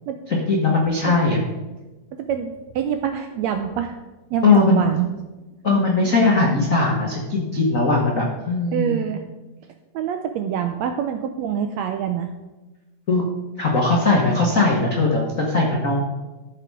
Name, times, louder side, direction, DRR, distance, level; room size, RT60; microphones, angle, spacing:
voice 1, 0.3-1.4 4.4-4.8 5.6-8.9 13.1-13.2 13.6-16.0, left 3 dB, 80° left, -1 dB, 0.7 m, -19 dB
voice 2, 2.3-4.0 4.3-5.1 8.7-9.2 9.9-12.3, right 8 dB, 85° right, 6 dB, 1.6 m, -25 dB
13.5 x 5.0 x 4.7 m, 1.1 s
omnidirectional pair, 3.6 m